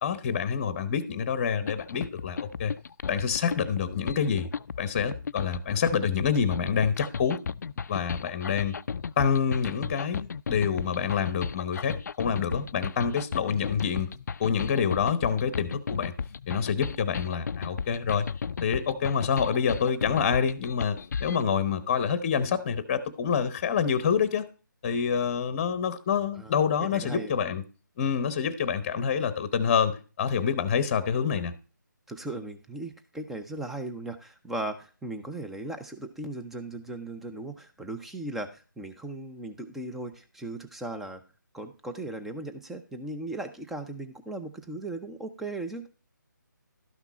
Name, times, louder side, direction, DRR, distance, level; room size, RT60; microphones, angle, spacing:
voice 1, 0.0-2.8 3.1-4.5 4.8-7.4 7.9-8.8 9.2-14.1 14.4-16.1 16.5-18.3 18.6-24.5 24.8-27.6 28.0-31.5, left 7 dB, 25° left, 0.9 m, -27 dB
sound 1, 1.7-21.4, left 6 dB, 60° left, 0.3 m, -35 dB
voice 2, 26.8-27.3 32.1-41.2 41.5-45.9, right 2 dB, ahead, 0.5 m, -37 dB
12.5 x 5.9 x 4.1 m
figure-of-eight pair, 160°, 11 cm